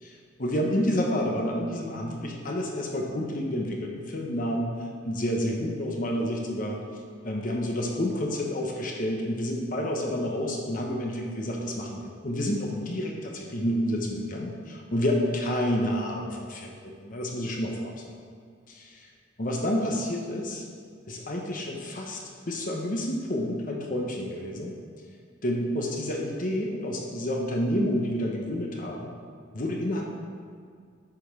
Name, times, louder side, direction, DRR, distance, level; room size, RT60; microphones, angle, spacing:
voice 1, 0.0-4.7 5.0-6.8 7.2-18.0 18.7-19.1 19.4-20.6 21.1-24.7 25.4-29.1 29.5-30.1, equal, 45° left, 0 dB, 1.0 m, -29 dB
8.5 x 5.3 x 6.1 m, 2.2 s
head